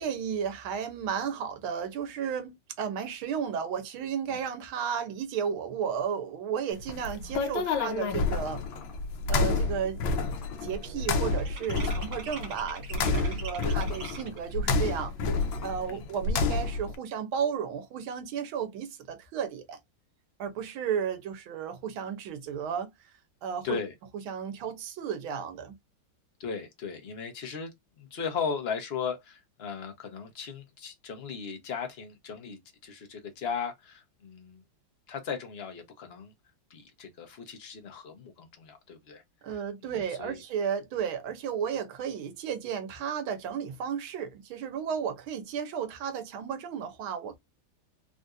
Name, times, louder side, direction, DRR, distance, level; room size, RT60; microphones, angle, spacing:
voice 1, 0.0-8.7 9.3-10.0 10.6-15.1 15.6-19.8 20.4-22.9 23.4-23.8 24.3-25.8 39.4-47.4, right 7 dB, 85° right, 1.6 m, -33 dB
sound 1, 6.7-16.9, left 3 dB, 75° left, 1.5 m, -29 dB
sound 2, 8.8-8.9 9.3-9.6 9.9-14.5, right 5 dB, 60° right, 0.6 m, -44 dB
voice 2, 23.6-23.9 26.4-34.6 35.1-36.3 36.7-39.2 39.5-40.4, left 6 dB, 45° left, 0.9 m, -37 dB
3.9 x 2.6 x 2.2 m
omnidirectional pair, 2.2 m